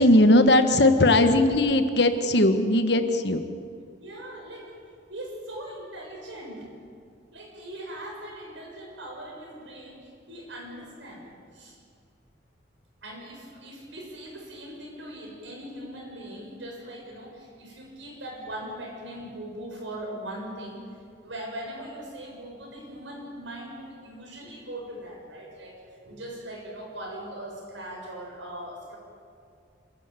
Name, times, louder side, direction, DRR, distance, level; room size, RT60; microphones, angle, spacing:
voice 1, 0.0-3.5, left 1 dB, 60° left, 7 dB, 1.5 m, -19 dB
voice 2, 4.0-4.7 5.1-6.7 7.3-11.8 13.0-20.8 21.2-29.0, right 1 dB, 80° right, -1 dB, 7.1 m, -40 dB
26.5 x 14.0 x 9.1 m, 2.3 s
head